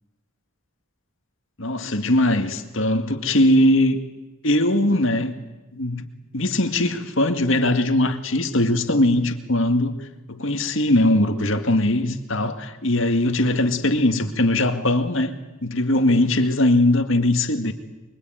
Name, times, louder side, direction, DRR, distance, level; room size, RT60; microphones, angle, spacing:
voice 1, 1.6-4.0 4.4-5.3 5.7-6.1 6.3-9.9 10.3-15.4 15.6-17.7, left 1 dB, 60° left, 7 dB, 2.1 m, -20 dB
25.0 x 24.0 x 9.3 m, 1.1 s
head